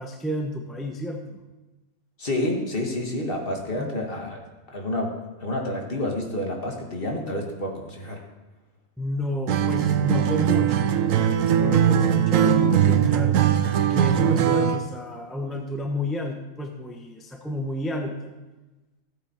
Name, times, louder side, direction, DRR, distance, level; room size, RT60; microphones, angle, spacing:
voice 1, 0.0-1.4 3.7-4.0 9.0-13.5 13.9-18.3, left 1 dB, ahead, 3 dB, 0.7 m, -31 dB
voice 2, 2.2-4.4 4.7-5.1 5.4-8.2, left 1 dB, 40° left, 1 dB, 1.8 m, -29 dB
Acoustic guitar, 9.5-14.9, right 9 dB, 70° right, 1.0 m, -20 dB
14.5 x 8.6 x 4.5 m, 1.1 s
omnidirectional pair, 1.5 m